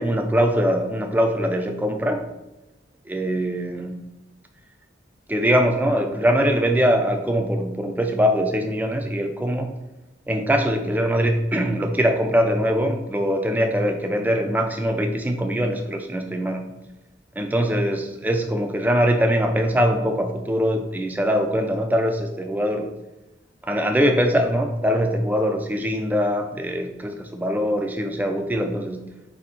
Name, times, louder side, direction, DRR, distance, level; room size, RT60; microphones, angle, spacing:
voice 1, 0.0-2.2 3.1-4.0 5.3-9.7 10.3-16.6 17.4-22.9 23.6-29.1, equal, 10° right, 4 dB, 0.3 m, -22 dB
4.1 x 2.7 x 4.1 m, 0.99 s
head